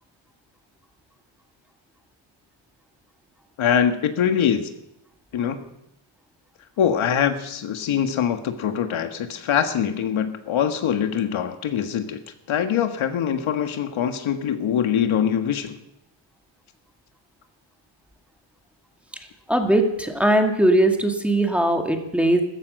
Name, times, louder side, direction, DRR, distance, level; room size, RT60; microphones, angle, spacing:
voice 1, 3.6-4.7 5.3-5.6 6.8-12.2 12.5-15.8, left 8 dB, 80° left, 7 dB, 1.6 m, -23 dB
voice 2, 19.5-22.4, right 1 dB, 5° right, 4 dB, 2.0 m, -20 dB
15.0 x 14.5 x 6.5 m, 0.82 s
cardioid pair, 120°, 47 cm